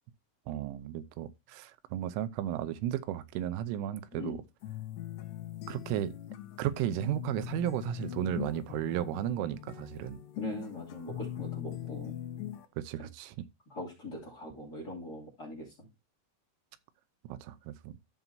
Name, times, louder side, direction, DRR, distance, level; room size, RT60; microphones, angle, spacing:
voice 1, 0.5-4.4 5.7-6.1 6.6-10.2 12.8-13.4 17.3-17.9, right 12 dB, 90° right, 3.3 m, -34 dB
sound 1, 4.6-12.7, left 12 dB, 70° left, 2.9 m, -41 dB
voice 2, 10.4-12.1 13.7-15.9, left 1 dB, 25° left, 2.3 m, -41 dB
14.0 x 5.9 x 2.7 m
omnidirectional pair, 5.7 m